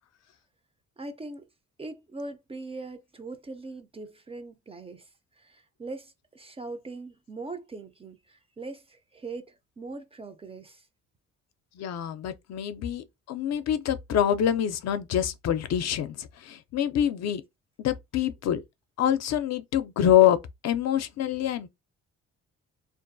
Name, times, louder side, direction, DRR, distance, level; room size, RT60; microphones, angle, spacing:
voice 1, 1.0-1.5 1.8-10.9, right 3 dB, 20° right, 0.4 m, -41 dB
voice 2, 11.8-17.4 17.8-18.6 19.0-20.4 20.6-21.7, left 10 dB, 60° left, 0.4 m, -25 dB
2.4 x 2.2 x 2.5 m
cardioid pair, 90°, 30 cm